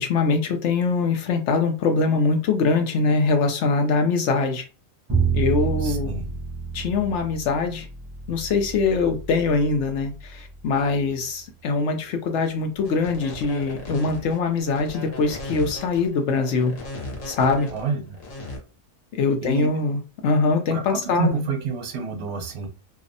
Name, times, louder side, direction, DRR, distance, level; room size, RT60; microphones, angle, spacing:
voice 1, 0.0-4.6 5.3-6.2 6.7-7.9 8.3-16.7 17.3-17.7 19.2-21.4, left 4 dB, 70° left, 5 dB, 0.8 m, -23 dB
Bowed string instrument, 5.1-11.3, right 6 dB, 30° right, 0.5 m, -29 dB
voice 2, 5.8-6.4 17.7-18.2 19.4-19.7 20.7-22.7, right 4 dB, 70° right, 5 dB, 0.9 m, -28 dB
sound 1, 12.8-18.6, left 2 dB, 90° left, 1.2 m, -37 dB
2.6 x 2.1 x 2.5 m, 0.33 s
omnidirectional pair, 1.3 m